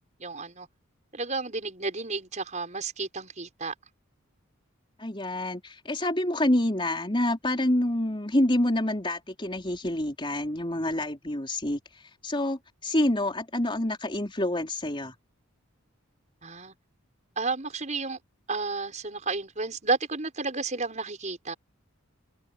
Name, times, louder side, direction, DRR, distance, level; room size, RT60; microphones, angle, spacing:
voice 1, 0.2-0.7 1.1-3.7 16.4-16.7 17.4-18.2 18.5-21.5, right 3 dB, 35° right, 6.6 m, -32 dB
voice 2, 5.0-11.8 12.2-15.1, left 1 dB, 25° left, 4.2 m, -27 dB
head